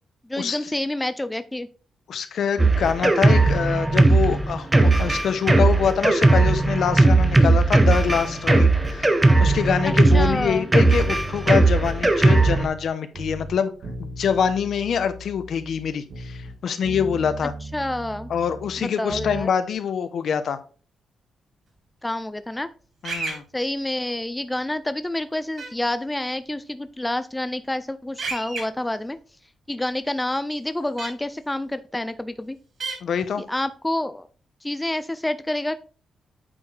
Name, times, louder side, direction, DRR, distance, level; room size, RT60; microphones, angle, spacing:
voice 1, 0.3-1.7 9.8-10.7 17.4-18.3 18.8-19.5 22.0-22.7 23.5-29.2 29.7-32.6 33.4-34.3 34.6-35.7, left 1 dB, 10° left, 12 dB, 0.4 m, -28 dB
voice 2, 2.1-9.1 9.4-13.7 14.0-17.5 18.3-20.6 23.0-23.4 33.0-33.4, left 7 dB, 65° left, 11 dB, 0.8 m, -25 dB
Drum kit, 2.6-12.7, right 2 dB, 15° right, 0.8 m, -18 dB
sound 1, 7.8-10.5 10.8-12.9 13.1-16.6 16.8-19.4 19.7-19.8, right 1 dB, 80° right, 2.0 m, -38 dB
sound 2, 23.0-23.4 25.6-25.7 28.2-28.6 31.0-31.1 32.8-33.0, right 4 dB, 55° right, 3.6 m, -29 dB
8.5 x 4.7 x 3.3 m, 0.39 s
cardioid pair, 130°, 0 cm